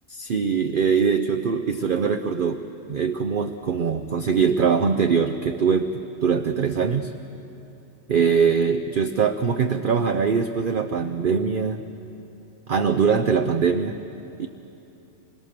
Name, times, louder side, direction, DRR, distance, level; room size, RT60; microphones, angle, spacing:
voice 1, 0.1-7.1 8.1-11.8 12.7-14.0 14.4-14.5, right 6 dB, 50° right, 7 dB, 0.8 m, -22 dB
26.5 x 21.0 x 6.7 m, 3.0 s
omnidirectional pair, 1.4 m